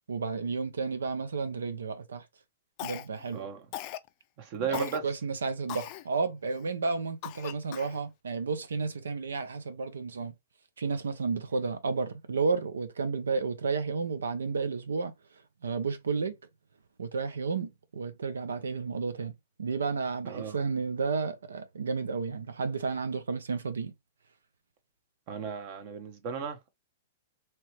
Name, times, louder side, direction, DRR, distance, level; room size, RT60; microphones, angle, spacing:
voice 1, 0.1-2.3 2.8-3.4 4.6-10.3 10.8-15.1 15.6-16.4 17.0-19.3 19.6-23.9, right 4 dB, 85° right, 0.5 m, -32 dB
Cough, 2.8-3.3 3.7-4.1 4.7-5.0 5.7-6.0 6.6-6.7 7.2-8.0, left 15 dB, 45° left, 0.3 m, -39 dB
voice 2, 3.3-3.7 4.4-5.0 20.2-20.6 25.3-26.7, right 6 dB, 45° right, 1.0 m, -35 dB
3.0 x 2.8 x 3.1 m
hypercardioid pair, 125°, 0 cm